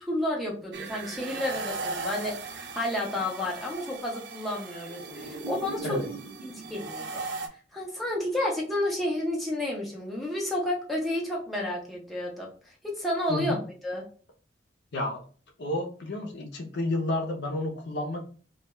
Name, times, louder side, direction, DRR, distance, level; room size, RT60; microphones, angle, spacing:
voice 1, 0.0-6.0 6.4-7.2 7.7-12.5 12.8-13.6 13.8-14.0, left 1 dB, ahead, -4 dB, 0.6 m, -31 dB
sound 1, 0.7-7.5, right 3 dB, 65° right, 0.4 m, -38 dB
voice 2, 13.3-13.6 14.9-15.2 15.6-18.2, left 1 dB, 65° left, 2 dB, 0.5 m, -30 dB
2.3 x 2.2 x 2.9 m, 0.41 s
head